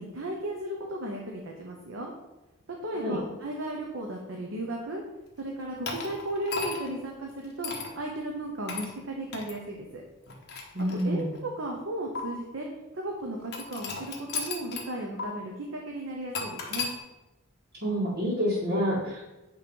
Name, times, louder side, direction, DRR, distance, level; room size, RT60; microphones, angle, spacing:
voice 1, 0.0-2.1 2.7-5.0 5.4-10.0 11.0-11.2 11.6-12.7 12.9-16.9, right 1 dB, 70° right, 0 dB, 0.9 m, -35 dB
sound 1, 5.9-7.0 7.6-7.9 8.7-8.9 9.3-9.5 10.3-11.4 12.2-12.3 13.5-14.9 15.2-15.3 16.3-16.9, left 4 dB, 55° left, 1.2 m, -35 dB
voice 2, 10.7-11.3 17.8-19.3, equal, 55° right, -7 dB, 1.8 m, -28 dB
8.9 x 3.2 x 5.3 m, 1.0 s
head